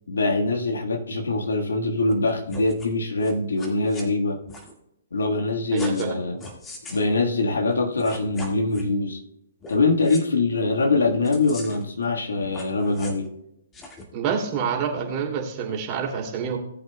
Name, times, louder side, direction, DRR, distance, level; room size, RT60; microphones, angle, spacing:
voice 1, 0.1-4.4 5.1-6.4 6.9-9.2 9.7-13.3, left 3 dB, 80° left, 4 dB, 1.6 m, -23 dB
sound 1, 2.1-2.2 2.5-2.9 3.2-4.0 4.5-4.7 5.7-6.1 6.4-7.0 7.7-7.8 8.0-8.9 9.6-9.8 10.0-10.2 11.2-11.9 12.4-13.3 13.7-14.0, left 1 dB, 15° left, 1.9 m, -40 dB
voice 2, 5.7-6.2 14.1-16.6, right 7 dB, 30° right, 0 dB, 2.6 m, -27 dB
18.0 x 7.9 x 2.3 m, 0.83 s
hypercardioid pair, 135°, 0 cm